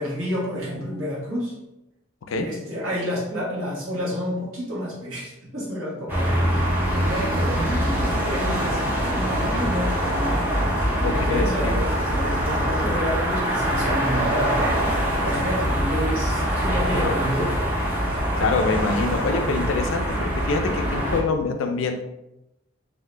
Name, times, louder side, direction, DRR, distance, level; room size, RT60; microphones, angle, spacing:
voice 1, 0.0-1.5 2.4-6.5 6.9-10.4 11.1-14.8 15.2-17.6, equal, 90° right, -5 dB, 1.3 m, -29 dB
sound 1, 6.1-21.2, equal, 10° right, 0.6 m, -24 dB
voice 2, 11.0-11.8 16.9-17.2 18.4-22.0, left 3 dB, 75° left, 6 dB, 0.4 m, -25 dB
2.7 x 2.5 x 3.2 m, 0.92 s
head